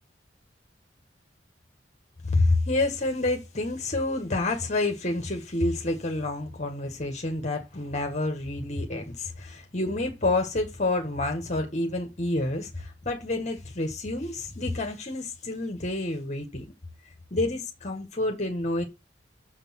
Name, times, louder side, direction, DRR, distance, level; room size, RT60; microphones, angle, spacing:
voice 1, 2.2-16.6 17.3-18.8, left 2 dB, 40° left, 1.6 m, -28 dB
7.0 x 6.7 x 5.8 m
head